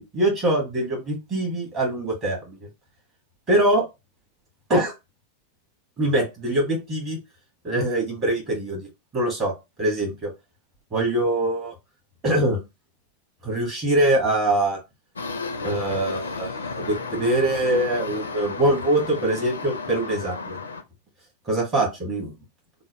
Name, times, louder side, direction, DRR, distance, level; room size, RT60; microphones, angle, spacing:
voice 1, 0.0-2.6 3.5-3.8 4.7-4.9 6.0-7.2 7.6-8.9 9.1-9.5 9.8-10.3 10.9-11.7 12.2-12.6 13.4-14.8 15.6-20.6 21.5-22.3, right 1 dB, 30° right, -1 dB, 1.8 m, -23 dB
sound 1, 15.2-20.8, left 4 dB, 75° left, 0.5 m, -33 dB
3.7 x 2.1 x 3.0 m, 0.24 s
figure-of-eight pair, 90°, 0 cm